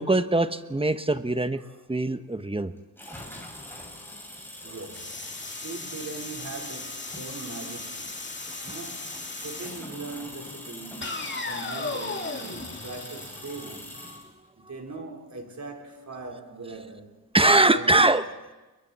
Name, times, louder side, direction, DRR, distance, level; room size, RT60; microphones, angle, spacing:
voice 1, 0.0-1.6 1.9-2.7 14.1-14.3 17.3-18.3, right 2 dB, 15° right, 1.1 m, -22 dB
sound 1, 3.0-14.3, left 1 dB, 5° left, 6.4 m, -43 dB
voice 2, 4.6-8.2 8.6-14.0 14.7-18.1, right 3 dB, 50° right, 4.1 m, -41 dB
sound 2, 4.9-9.9 11.0-13.9, left 3 dB, 30° left, 2.4 m, -37 dB
30.0 x 23.0 x 4.2 m
cardioid pair, 70°, 37 cm